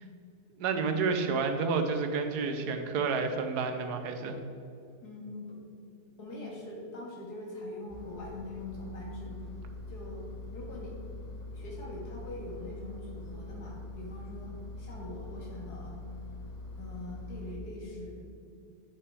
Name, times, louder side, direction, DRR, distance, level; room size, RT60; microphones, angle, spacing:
voice 1, 0.6-4.4, right 4 dB, 80° right, 6 dB, 1.4 m, -30 dB
voice 2, 5.0-5.6 6.2-9.4 9.9-10.9 11.5-16.0 16.8-18.2, left 2 dB, 80° left, -3 dB, 2.4 m, -43 dB
Engine, 7.9-17.5, left 2 dB, 30° left, 0.9 m, -43 dB
8.6 x 6.0 x 4.7 m, 2.5 s
omnidirectional pair, 1.7 m